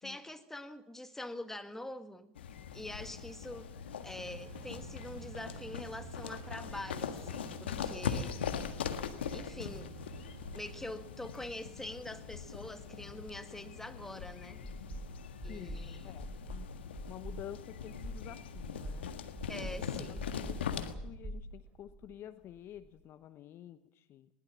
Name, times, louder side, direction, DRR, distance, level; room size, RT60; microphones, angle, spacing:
voice 1, 0.0-2.3 2.7-3.7 4.0-8.4 9.3-9.9 10.5-14.6 15.4-16.2 19.5-20.3, left 1 dB, 5° left, 9 dB, 1.8 m, -44 dB
sound 1, 2.4-20.9, left 7 dB, 75° left, 1.6 m, -41 dB
sound 2, 4.2-10.9, right 9 dB, 70° right, 1.1 m, -52 dB
sound 3, 14.6-15.1 15.4-15.9 16.2-16.7 17.0-17.4 17.8-18.2 18.5-19.0 19.4-19.8 20.2-20.6 20.9-22.1, right 1 dB, 20° right, 5.7 m, -42 dB
voice 2, 15.5-16.7 17.1-19.1 19.7-24.3, left 11 dB, 40° left, 13 dB, 1.0 m, -50 dB
21.0 x 20.0 x 7.3 m, 0.81 s
figure-of-eight pair, 80°, 6 cm